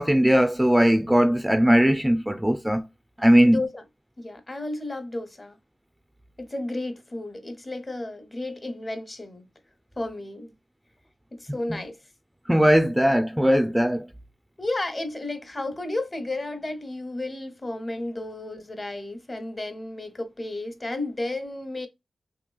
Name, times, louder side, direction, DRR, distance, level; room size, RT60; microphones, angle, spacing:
voice 1, 0.0-2.8 3.2-3.6 12.5-14.0, equal, 10° right, 0.4 m, -19 dB
voice 2, 3.4-3.8 4.2-5.6 6.4-9.4 10.0-10.5 11.3-12.0 14.6-21.9, left 2 dB, 35° left, 0.9 m, -32 dB
3.0 x 2.7 x 2.3 m
cardioid pair, 40°, 0 cm